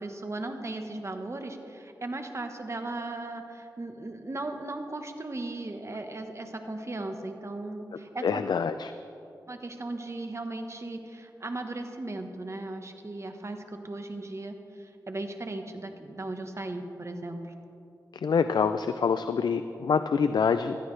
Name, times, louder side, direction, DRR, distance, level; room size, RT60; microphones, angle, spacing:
voice 1, 0.0-8.6 9.5-17.5, right 2 dB, 40° right, 5 dB, 1.2 m, -37 dB
voice 2, 8.2-8.9 18.2-20.8, left 6 dB, 75° left, 11 dB, 0.4 m, -26 dB
16.0 x 13.0 x 3.3 m, 2.8 s
cardioid pair, 55°, 7 cm